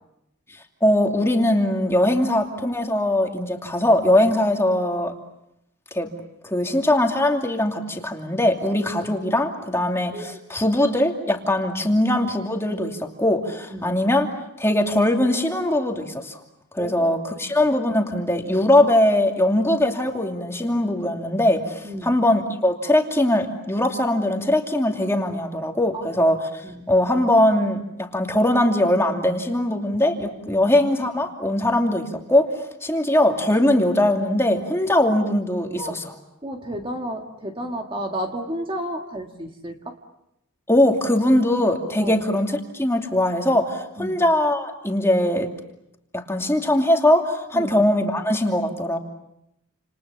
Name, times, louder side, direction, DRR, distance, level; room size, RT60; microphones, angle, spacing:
voice 1, 0.8-5.1 5.9-6.1 6.4-14.3 14.6-16.4 16.7-26.6 26.9-32.5 32.8-36.0 40.7-45.5 46.1-49.0, left 1 dB, 10° left, 2 dB, 2.6 m, -21 dB
voice 2, 21.8-22.2 25.9-26.1 26.6-26.8 30.5-30.6 35.8-36.0 36.4-40.0 42.0-42.2 44.0-44.2 47.5-47.7, right 1 dB, 25° right, 3 dB, 1.8 m, -32 dB
29.5 x 28.0 x 7.0 m, 0.83 s
head